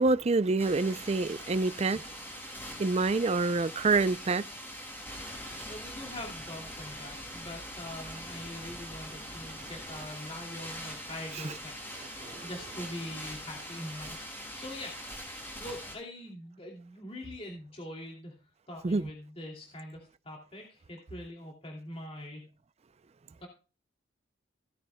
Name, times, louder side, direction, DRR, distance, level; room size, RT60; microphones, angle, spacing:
voice 1, 0.0-2.1 2.8-4.4 11.4-11.5 12.2-12.5 18.8-19.1, right 3 dB, 35° right, 0.4 m, -27 dB
sound 1, 0.6-15.9, equal, 10° left, 5.8 m, -42 dB
voice 2, 5.7-18.4 18.7-22.5 23.4-23.5, left 1 dB, 30° left, 2.6 m, -43 dB
16.5 x 9.7 x 2.2 m
head